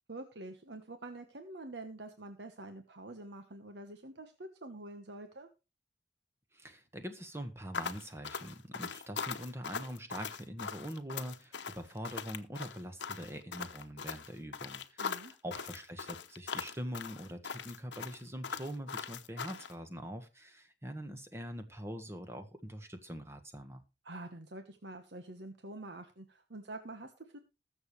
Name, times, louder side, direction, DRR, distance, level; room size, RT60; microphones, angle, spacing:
voice 1, 0.1-5.5 15.0-15.3 24.0-27.4, right 2 dB, 75° right, 7 dB, 1.3 m, -46 dB
voice 2, 6.5-23.8, equal, 15° right, 7 dB, 1.5 m, -43 dB
sound 1, 7.7-19.7, left 6 dB, 85° left, 0.9 m, -41 dB
20.5 x 7.2 x 3.2 m, 0.28 s
head